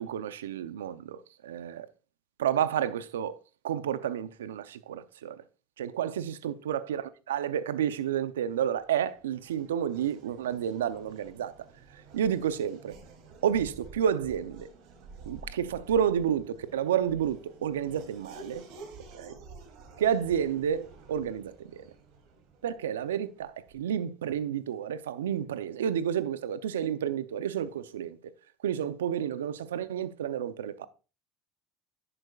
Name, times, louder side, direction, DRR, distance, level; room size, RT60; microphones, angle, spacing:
voice 1, 0.0-1.9 2.4-3.4 3.6-5.4 5.8-11.5 11.9-13.0 13.4-14.7 15.3-18.6 19.1-19.4 20.0-21.9 22.6-28.2 28.6-30.9, right 9 dB, 90° right, 0.6 m, -30 dB
Race car auto racing / Accelerating revving vroom, 8.5-24.0, right 3 dB, 65° right, 2.9 m, -51 dB
11.0 x 8.8 x 2.4 m
hypercardioid pair, 80°, 0 cm